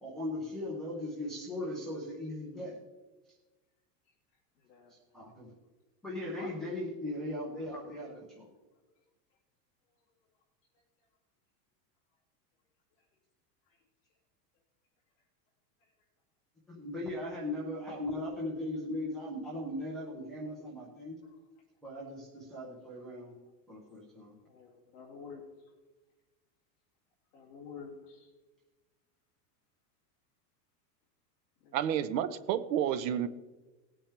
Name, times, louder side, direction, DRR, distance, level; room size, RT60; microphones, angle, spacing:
voice 1, 0.0-2.8 4.9-5.6 6.0-8.5 16.7-21.2 21.8-23.3 23.7-24.3, left 1 dB, ahead, -7 dB, 0.3 m, -38 dB
voice 2, 4.6-4.9 6.2-6.5 8.7-8.8 13.7-13.8 15.8-15.9 24.4-25.4 27.3-28.3 31.6-31.8, left 5 dB, 35° left, -2 dB, 2.2 m, -49 dB
voice 3, 31.7-33.3, right 10 dB, 75° right, 13 dB, 0.9 m, -30 dB
18.5 x 8.8 x 3.3 m, 1.2 s
supercardioid pair, 170°, 50 cm